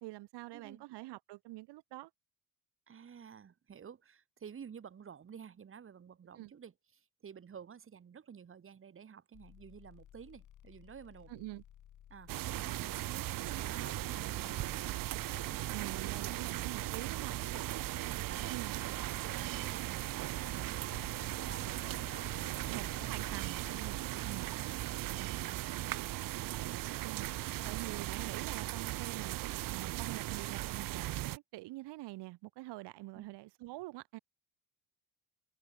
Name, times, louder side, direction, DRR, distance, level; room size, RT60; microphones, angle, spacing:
voice 1, 0.0-2.1 6.4-6.5 11.3-11.6 15.7-17.4 18.5-18.8 22.7-24.5 25.0-25.3 27.0-27.3 27.7-29.4 29.7-34.2, right 19 dB, 85° right, 1.6 m, -45 dB
voice 2, 0.5-0.9 2.9-11.3 12.1-13.3 13.6-15.1 15.5-16.4 17.1-17.7 18.2-18.6 18.9-21.0 21.4-23.1 24.1-27.2 27.6-27.7 33.1-33.4, right 7 dB, 30° right, 2.0 m, -52 dB
sound 1, 9.3-24.1, left 11 dB, 50° left, 1.8 m, -58 dB
sound 2, 12.3-31.4, right 16 dB, 55° right, 0.7 m, -38 dB
sound 3, 20.9-24.9, left 17 dB, 80° left, 3.5 m, -56 dB
open air
cardioid pair, 130°, 40 cm